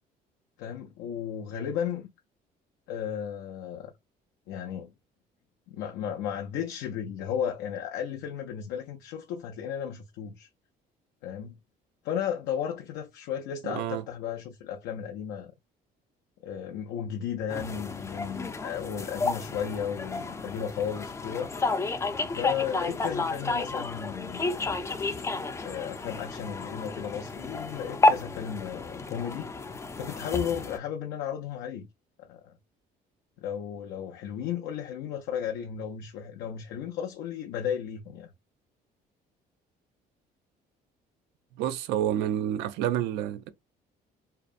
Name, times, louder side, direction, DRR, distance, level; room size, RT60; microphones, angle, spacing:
voice 1, 0.6-2.1 2.9-3.9 4.5-4.9 5.7-10.5 11.2-11.5 12.0-15.5 16.4-21.5 22.3-24.6 25.6-29.5 30.0-31.9 32.2-32.5 33.4-38.3, left 8 dB, 85° left, 0.4 m, -34 dB
voice 2, 13.6-14.0 41.6-43.5, right 11 dB, 85° right, 0.4 m, -29 dB
sound 1, 17.5-30.8, left 2 dB, 15° left, 0.3 m, -31 dB
2.7 x 2.1 x 2.4 m
cardioid pair, 110°, 17 cm